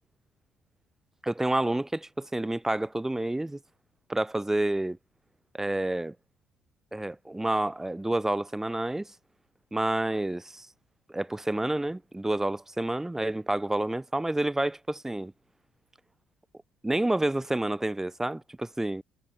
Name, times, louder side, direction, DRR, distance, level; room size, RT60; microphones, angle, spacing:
voice 1, 1.2-3.6 4.1-5.0 5.5-6.1 6.9-9.1 9.7-10.7 11.1-15.3 16.8-19.0, right 1 dB, 10° right, 1.1 m, -29 dB
hypercardioid pair, 55°, 4 cm